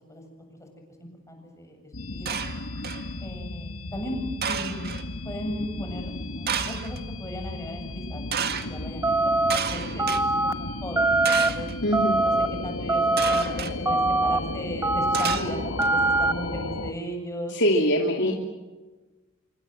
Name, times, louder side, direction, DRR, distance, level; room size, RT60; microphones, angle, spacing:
voice 1, 1.0-2.4 3.2-9.3 9.7-10.1 10.4-11.7 12.2-12.3 12.6-17.5 18.2-18.3, equal, 15° left, 3 dB, 7.7 m, -37 dB
sound 1, 1.9-16.9, left 2 dB, 75° left, 1.4 m, -34 dB
sound 2, 2.3-3.1 4.4-5.0 6.5-7.0 8.3-8.7 9.5-10.2 11.2-11.7 13.2-13.7 15.1-15.9, right 7 dB, 50° right, 2.1 m, -31 dB
sound 3, 9.0-9.6 10.0-10.5 11.0-11.5 11.9-12.5 12.9-13.4 13.9-14.4 14.8-15.4 15.8-16.3, right 2 dB, 15° right, 1.9 m, -22 dB
voice 2, 11.8-12.2 17.5-18.3, equal, 60° left, 1 dB, 3.0 m, -22 dB
27.0 x 24.5 x 7.8 m, 1.2 s
head